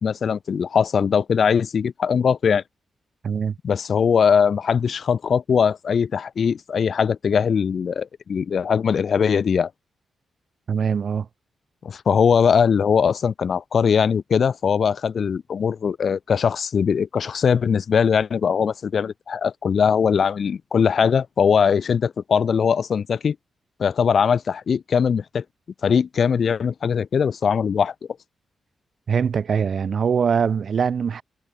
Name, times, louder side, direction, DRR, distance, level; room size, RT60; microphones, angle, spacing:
voice 1, 0.0-2.6 3.6-9.7 11.8-23.4 23.8-25.4 25.8-27.9, left 6 dB, 50° left, 1.2 m, -20 dB
voice 2, 3.2-3.6 10.7-11.3 29.1-31.2, right 6 dB, 50° right, 4.4 m, -22 dB
wide cardioid pair, 145°, 0 cm